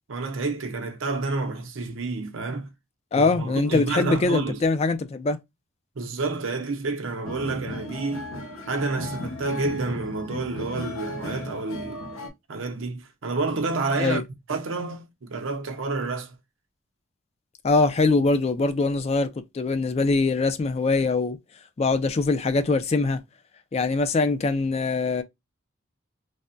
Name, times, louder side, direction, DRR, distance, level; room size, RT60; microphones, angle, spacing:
voice 1, 0.1-2.7 3.2-4.6 6.0-8.3 8.7-12.0 12.5-14.2 14.5-16.4, right 3 dB, 70° right, 0.6 m, -29 dB
voice 2, 3.1-5.4 14.0-14.2 17.6-19.3 19.5-21.4 21.8-23.2 23.7-25.2, left 3 dB, 30° left, 0.3 m, -22 dB
sound 1, 7.2-12.3, left 1 dB, 85° left, 0.8 m, -36 dB
3.3 x 2.1 x 2.4 m
head